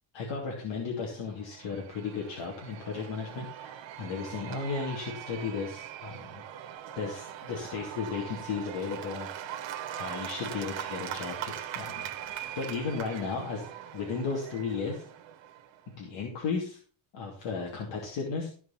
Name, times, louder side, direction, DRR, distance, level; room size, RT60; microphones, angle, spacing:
voice 1, 0.1-6.4 6.9-9.3 9.9-13.6 13.9-15.0 16.0-16.8 17.1-18.5, left 5 dB, 65° left, -1 dB, 2.9 m, -35 dB
Cheering / Applause / Crowd, 1.2-15.9, right 11 dB, 70° right, 1.5 m, -41 dB
14.5 x 4.9 x 5.8 m, 0.42 s
cardioid pair, 165°, 47 cm